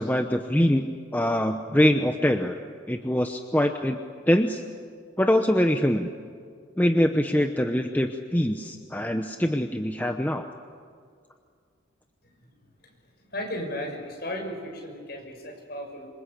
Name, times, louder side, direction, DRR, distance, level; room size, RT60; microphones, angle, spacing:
voice 1, 0.0-2.6 2.9-4.0 4.3-4.6 5.2-6.1 6.8-10.5, equal, 10° left, 5 dB, 0.9 m, -23 dB
voice 2, 13.3-16.1, left 1 dB, 50° left, 2 dB, 6.3 m, -35 dB
27.0 x 25.5 x 8.5 m, 2.1 s
head